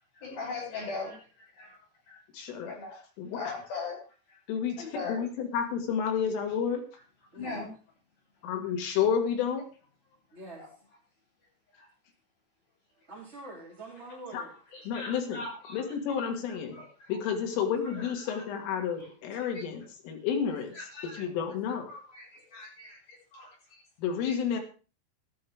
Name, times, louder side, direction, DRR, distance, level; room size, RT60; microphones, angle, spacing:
voice 1, 0.2-2.2 2.7-3.0 3.3-4.0 4.3-4.4 4.8-5.2 7.3-7.7 10.6-10.7 11.7-11.9 14.3-14.4 14.7-17.2 17.8-18.4 19.0-19.1 19.4-19.6 20.8-21.2 21.9-23.8 24.2-24.4, left 3 dB, 50° left, -3 dB, 8.5 m, -41 dB
voice 2, 2.3-2.8 3.2-3.4 4.5-6.9 8.4-9.7 14.3-14.4 14.9-15.4 15.7-16.8 17.1-20.8 21.2-21.9 24.0-24.6, left 7 dB, 90° left, 3 dB, 5.0 m, -30 dB
voice 3, 7.3-7.7 10.3-10.7 13.1-14.5, right 2 dB, 15° right, -5 dB, 2.8 m, -45 dB
15.0 x 13.0 x 3.6 m, 0.34 s
omnidirectional pair, 5.6 m